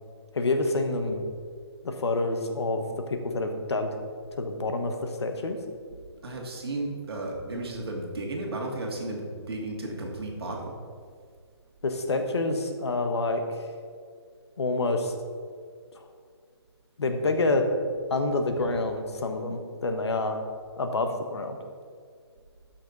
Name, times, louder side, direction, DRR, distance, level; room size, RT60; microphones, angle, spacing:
voice 1, 0.3-1.2 1.8-4.0 4.3-5.6 11.8-13.7 14.6-15.1 15.9-16.1 17.0-17.7 18.1-20.5 20.8-21.6, left 2 dB, 70° left, 6 dB, 1.2 m, -28 dB
voice 2, 6.2-10.8, right 2 dB, 60° right, 0 dB, 2.3 m, -34 dB
13.0 x 6.0 x 4.0 m, 2.1 s
hypercardioid pair, 180°, 14 cm